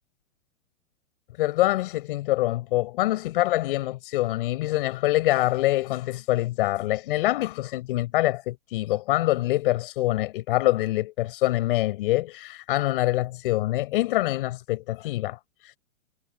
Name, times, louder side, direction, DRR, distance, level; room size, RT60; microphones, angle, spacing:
voice 1, 1.4-15.8, left 17 dB, 40° left, 7.2 m, -25 dB
hypercardioid pair, 175°, 43 cm